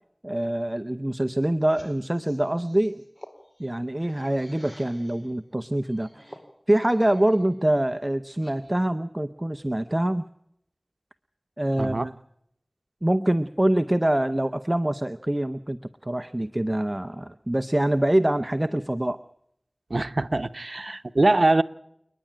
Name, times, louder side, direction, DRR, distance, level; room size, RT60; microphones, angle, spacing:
voice 1, 0.2-3.0 3.6-6.4 6.7-10.2 11.6-12.1 13.0-15.8 16.0-19.2, right 1 dB, 25° right, 0.7 m, -25 dB
sound 1, 1.6-5.3 5.8-7.5 7.9-8.9, equal, 20° left, 4.3 m, -51 dB
voice 2, 11.8-12.1 19.9-21.6, right 2 dB, 70° right, 0.9 m, -23 dB
29.5 x 10.5 x 9.0 m
wide cardioid pair, 50°, 0 cm